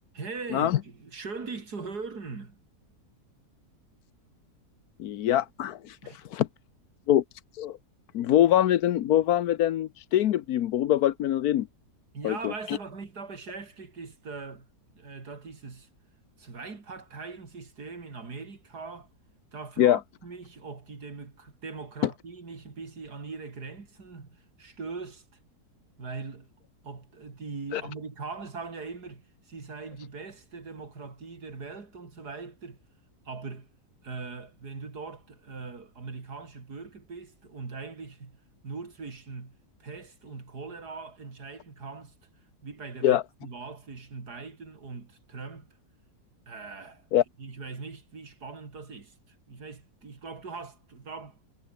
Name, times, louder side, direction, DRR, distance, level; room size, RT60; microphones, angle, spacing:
voice 1, 0.1-2.6 6.0-6.2 12.1-14.7 14.9-15.9 16.4-19.1 19.5-25.2 26.0-26.5 26.8-32.8 33.3-33.7 34.0-42.1 42.6-45.8 46.5-47.0 47.4-51.4, right 4 dB, 90° right, 3.6 m, -41 dB
voice 2, 5.0-6.5 7.1-7.2 7.5-7.8 8.1-11.7 12.2-12.8 19.8-20.0 27.7-27.8 43.0-43.2 47.1-47.2, left 12 dB, 75° left, 1.3 m, -24 dB
omnidirectional pair, 1.7 m